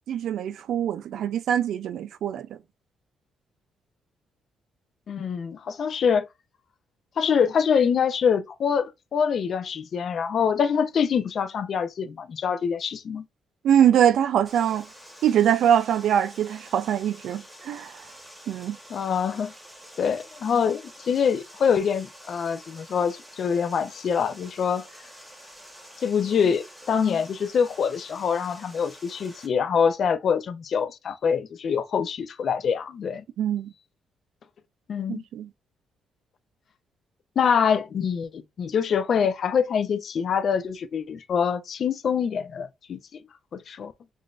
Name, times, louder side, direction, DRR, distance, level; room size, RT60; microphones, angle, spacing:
voice 1, 0.1-2.5 13.6-14.9 15.2-17.9 18.5-18.8 33.4-33.7 35.1-35.5, right 9 dB, 75° right, 0.3 m, -23 dB
voice 2, 5.1-6.3 7.2-13.2 18.9-19.5 20.0-24.8 26.0-33.2 34.9-35.2 37.4-43.2 43.5-43.9, left 7 dB, 55° left, 0.4 m, -25 dB
Water, 14.5-29.5, equal, 5° right, 1.2 m, -48 dB
3.7 x 2.5 x 2.4 m
cardioid pair, 90°, 0 cm